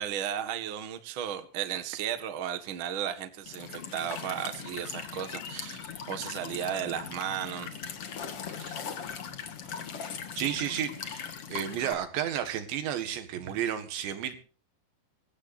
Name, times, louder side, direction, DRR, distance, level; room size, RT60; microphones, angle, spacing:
voice 1, 0.0-7.7 8.6-8.8 13.5-13.6, right 9 dB, 65° right, 8 dB, 1.2 m, -35 dB
Walk footsteps / Chirp tweet / Stream, 3.5-11.9, left 7 dB, 55° left, 1.6 m, -40 dB
voice 2, 10.4-14.4, right 10 dB, 85° right, 8 dB, 4.0 m, -32 dB
24.0 x 15.0 x 2.7 m, 0.37 s
omnidirectional pair, 5.0 m